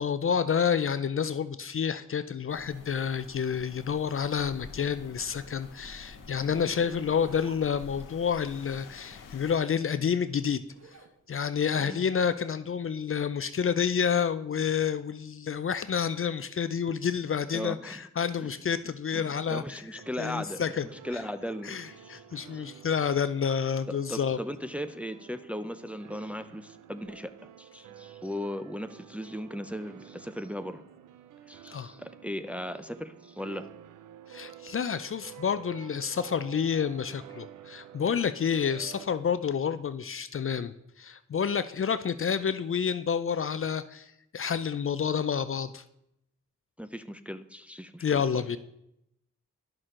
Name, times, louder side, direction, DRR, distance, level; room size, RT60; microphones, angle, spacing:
voice 1, 0.0-10.6 11.3-19.6 20.2-20.8 21.1-21.2 21.6-24.4 31.7-31.9 34.3-45.8 48.0-48.6, left 7 dB, 45° left, 13 dB, 0.5 m, -29 dB
sound 1, 2.5-9.6, left 5 dB, 85° left, 0.9 m, -48 dB
Zipper (clothing), 6.3-8.3 9.5-11.2 11.5-14.0, right 3 dB, 55° right, 1.2 m, -52 dB
voice 2, 17.5-18.0 18.4-18.5 19.1-20.6 20.9-21.8 22.0-22.2 22.5-22.7 23.9-30.8 31.5-33.7 46.8-48.2, equal, 5° right, 9 dB, 0.5 m, -37 dB
sound 2, 19.9-39.1, right 10 dB, 80° right, 0.5 m, -50 dB
11.0 x 6.2 x 3.8 m, 0.80 s
cardioid pair, 50°, 31 cm